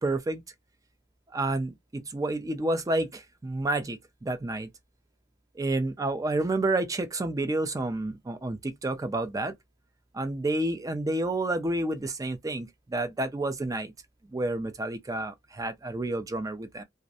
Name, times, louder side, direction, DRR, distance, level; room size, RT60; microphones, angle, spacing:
voice 1, 0.0-0.4 1.3-4.7 5.6-9.5 10.1-13.9 14.3-16.8, right 2 dB, 20° right, 0.4 m, -30 dB
2.4 x 2.0 x 2.7 m
head